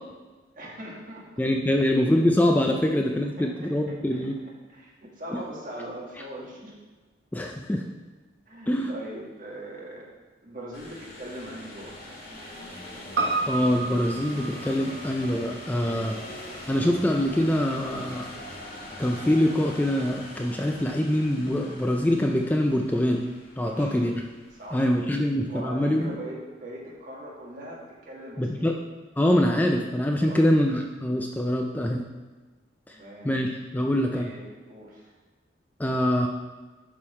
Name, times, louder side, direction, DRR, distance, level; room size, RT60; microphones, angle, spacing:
voice 1, 0.5-1.3 1.7-1.9 3.4-6.7 8.5-10.1 10.4-11.9 15.8-16.1 23.6-24.1 24.5-25.0 25.5-28.7 30.2-30.4 32.9-33.3 34.1-35.1, right 1 dB, 45° right, -4 dB, 1.7 m, -41 dB
voice 2, 1.4-4.3 7.3-7.8 8.7-8.9 13.5-16.2 16.7-18.3 19.0-23.2 23.6-24.1 24.7-26.1 28.4-28.7 29.2-32.0 32.9-33.0 33.2-34.3 35.8-36.3, left 1 dB, 10° left, 2 dB, 0.4 m, -24 dB
sound 1, 10.7-25.1, left 1 dB, 55° left, 1.8 m, -42 dB
Piano, 13.2-17.7 18.0-18.1, right 3 dB, 90° right, 1.3 m, -32 dB
10.5 x 3.7 x 4.3 m, 1.3 s
head